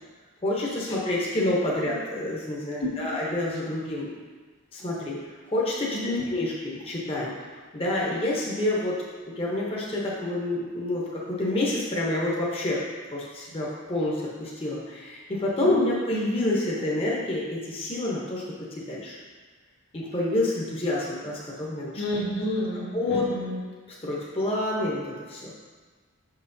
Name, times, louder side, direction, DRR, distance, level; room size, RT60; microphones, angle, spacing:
voice 1, 0.4-4.1 4.7-5.2 5.5-6.0 6.3-7.3 7.7-9.0 9.4-12.8 13.1-19.2 19.9-22.0 22.9-23.2 24.0-25.5, left 1 dB, 25° left, -5 dB, 0.8 m, -28 dB
voice 2, 5.9-6.2 15.7-15.9 21.9-23.6, left 1 dB, 55° left, -4 dB, 1.3 m, -30 dB
6.2 x 5.7 x 2.6 m, 1.4 s
head